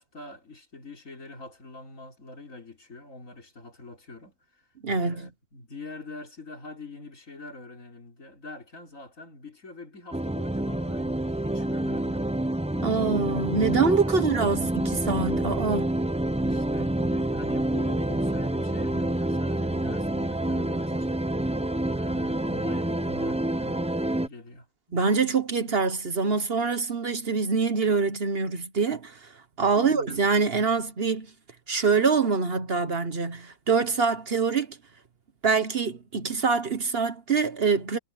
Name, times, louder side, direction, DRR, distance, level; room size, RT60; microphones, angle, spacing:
voice 1, 0.0-4.7 4.9-12.3 14.0-14.2 16.3-21.2 21.9-23.9 24.1-25.0 29.6-30.2, left 3 dB, 70° left, 4.5 m, -45 dB
voice 2, 4.8-5.2 12.8-15.9 24.9-29.3 29.6-31.3 31.7-34.8 35.4-38.0, right 5 dB, 50° right, 1.3 m, -25 dB
sound 1, 10.1-24.3, right 1 dB, 5° right, 0.6 m, -27 dB
omnidirectional pair, 1.4 m